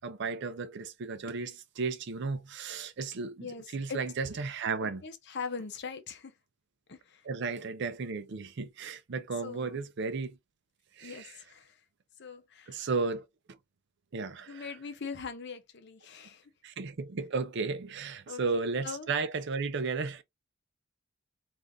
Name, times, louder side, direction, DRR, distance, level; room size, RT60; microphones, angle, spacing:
voice 1, 0.0-5.0 7.2-10.4 11.0-11.3 12.7-13.6 14.1-14.7 16.6-20.2, right 4 dB, 60° right, 0.5 m, -34 dB
voice 2, 3.4-4.0 4.8-6.3 6.9-7.3 9.4-9.8 11.0-11.8 12.2-12.9 14.5-16.5 18.3-18.4 18.8-19.1, left 5 dB, 55° left, 0.6 m, -41 dB
3.6 x 2.5 x 2.5 m
head